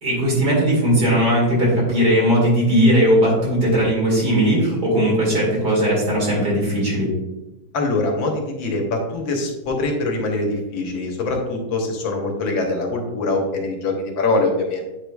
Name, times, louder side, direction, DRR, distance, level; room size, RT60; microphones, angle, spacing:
voice 1, 0.0-7.1, equal, 55° right, -4 dB, 2.8 m, -18 dB
voice 2, 7.7-14.8, left 2 dB, 80° left, 2 dB, 1.8 m, -23 dB
8.5 x 4.9 x 2.3 m, 0.98 s
omnidirectional pair, 2.1 m